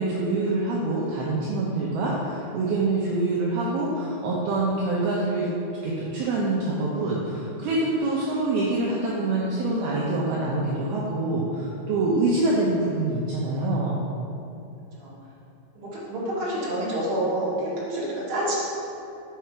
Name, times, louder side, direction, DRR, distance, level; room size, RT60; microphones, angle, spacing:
voice 1, 0.0-5.5 5.8-14.0, right 2 dB, 90° right, -4 dB, 2.2 m, -25 dB
voice 2, 15.7-18.5, right 1 dB, 50° right, -9 dB, 1.9 m, -28 dB
7.8 x 5.6 x 4.5 m, 2.8 s
omnidirectional pair, 5.5 m